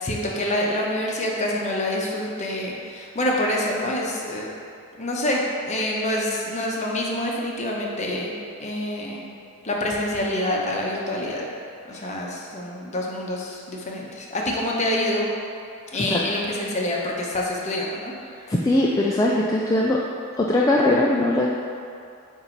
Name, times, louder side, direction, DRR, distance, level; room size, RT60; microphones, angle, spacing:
voice 1, 0.0-4.5 4.9-9.2 9.6-11.5 11.9-15.3 15.9-18.1, left 1 dB, 35° left, -2 dB, 0.8 m, -26 dB
voice 2, 18.5-20.0 20.4-21.5, left 1 dB, 15° left, -4 dB, 0.3 m, -20 dB
7.9 x 2.7 x 4.5 m, 2.5 s
head